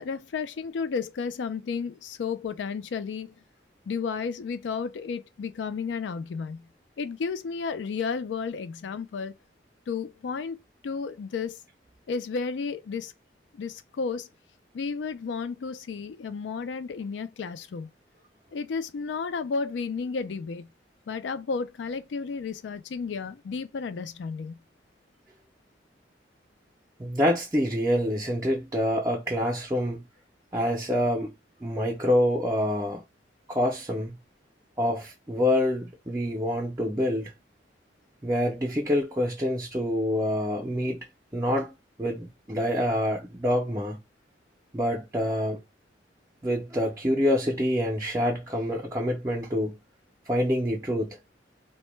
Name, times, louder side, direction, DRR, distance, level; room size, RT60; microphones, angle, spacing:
voice 1, 0.0-3.4 3.9-6.7 7.0-9.3 9.9-10.6 10.8-11.6 12.1-13.1 13.5-14.3 14.7-17.9 18.5-20.7 21.1-24.6, left 5 dB, 80° left, 0.4 m, -32 dB
voice 2, 27.0-30.0 30.5-31.3 31.6-33.0 33.5-34.1 34.8-37.3 38.2-41.0 41.3-41.7 42.0-44.0 44.7-45.6 46.4-49.8 50.3-51.2, equal, 15° right, 0.5 m, -26 dB
2.1 x 2.1 x 3.0 m
head